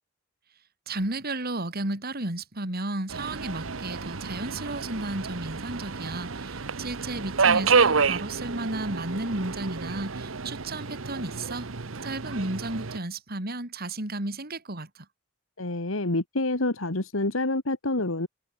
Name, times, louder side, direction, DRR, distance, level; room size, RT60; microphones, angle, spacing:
voice 1, 0.9-11.7 12.0-15.1, right 2 dB, 50° right, 3.7 m, -33 dB
Subway metro underground, 3.1-13.0, right 5 dB, 75° right, 1.1 m, -29 dB
voice 2, 15.6-18.3, left 2 dB, 80° left, 2.2 m, -27 dB
head